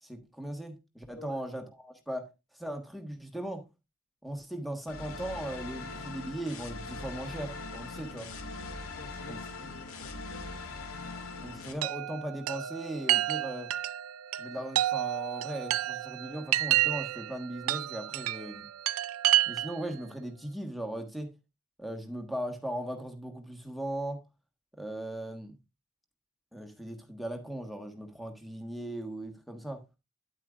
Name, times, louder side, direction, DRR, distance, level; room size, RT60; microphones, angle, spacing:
voice 1, 0.0-2.3 2.6-3.6 4.2-8.3 9.3-9.4 11.4-13.7 14.4-18.6 19.5-21.3 21.8-24.2 24.8-25.6 26.5-29.8, right 1 dB, ahead, 1.3 m, -38 dB
voice 2, 1.2-1.5 9.0-10.6, left 3 dB, 60° left, 0.7 m, -52 dB
sound 1, 4.9-11.7, left 3 dB, 80° left, 1.9 m, -41 dB
Chime, 11.8-19.9, right 15 dB, 85° right, 0.4 m, -30 dB
9.9 x 8.8 x 2.4 m
head